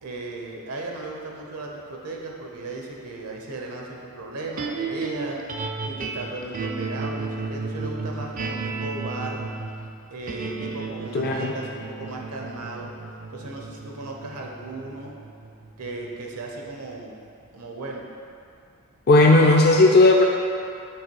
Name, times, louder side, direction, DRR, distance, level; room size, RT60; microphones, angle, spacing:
voice 1, 0.0-5.4 5.8-9.4 10.1-12.9 13.3-15.1 15.8-17.2 17.5-18.1, right 2 dB, 80° right, -1 dB, 0.9 m, -36 dB
sound 1, 4.6-16.9, right 4 dB, 35° right, 0.4 m, -33 dB
voice 2, 11.1-11.5 19.1-20.3, left 2 dB, 45° left, 0 dB, 0.4 m, -15 dB
8.0 x 3.2 x 4.6 m, 2.5 s
head